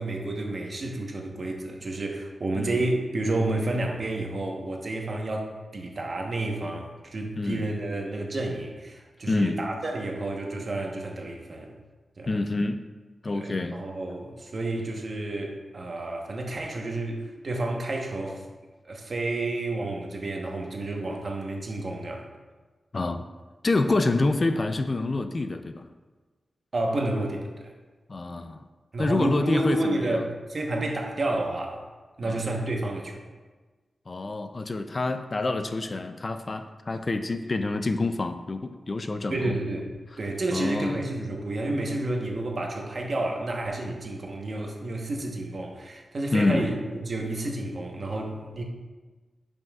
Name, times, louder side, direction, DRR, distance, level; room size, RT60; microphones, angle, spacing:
voice 1, 0.0-11.7 12.2-12.3 13.3-18.4 18.8-22.3 26.7-27.7 28.9-31.8 32.2-33.3 39.3-39.9 40.2-48.6, right 2 dB, 50° right, 1 dB, 1.0 m, -30 dB
voice 2, 7.4-7.7 9.3-9.6 12.3-12.8 13.2-13.8 22.9-23.2 23.6-25.9 28.1-28.7 29.0-30.3 32.2-32.4 34.1-39.6 40.5-41.0 46.3-46.8, left 2 dB, 40° left, 8 dB, 0.4 m, -27 dB
10.5 x 5.4 x 2.4 m, 1.3 s
wide cardioid pair, 110°, 0 cm